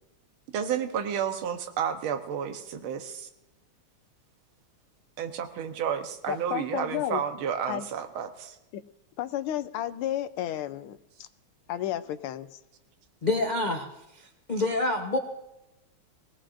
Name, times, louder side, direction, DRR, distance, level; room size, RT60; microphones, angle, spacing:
voice 1, 0.5-3.3 5.2-8.6, right 8 dB, 75° right, 7 dB, 1.7 m, -31 dB
voice 2, 6.3-7.2 7.7-7.9 8.7-8.8 9.2-11.3 11.7-12.6, left 12 dB, 80° left, 12 dB, 1.5 m, -32 dB
voice 3, 13.2-13.9 14.1-15.2, left 2 dB, 60° left, 2 dB, 0.4 m, -27 dB
22.0 x 17.0 x 2.5 m, 0.93 s
omnidirectional pair, 2.4 m